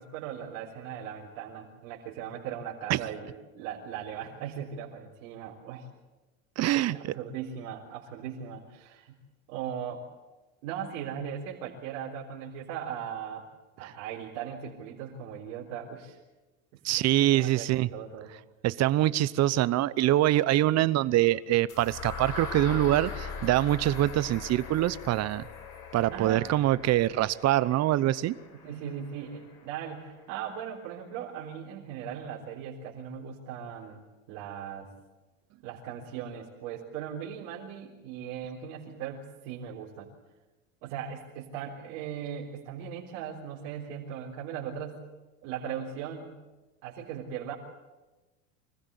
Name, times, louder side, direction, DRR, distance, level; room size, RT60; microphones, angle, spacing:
voice 1, 0.0-5.9 6.6-9.2 9.5-10.1 10.6-13.4 13.8-16.2 16.7-16.8 17.2-18.3 26.1-26.5 28.6-34.0 34.3-34.9 35.6-40.1 40.8-45.0 45.4-46.4 46.8-47.5, right 8 dB, 75° right, -4 dB, 3.9 m, -38 dB
voice 2, 6.6-7.0 16.8-17.9 18.6-25.5 25.9-28.3, right 14 dB, 45° right, 18 dB, 0.8 m, -24 dB
sound 1, 21.7-29.6, left 5 dB, 65° left, 4.3 m, -41 dB
25.0 x 15.5 x 8.3 m, 1.1 s
supercardioid pair, 115°, 38 cm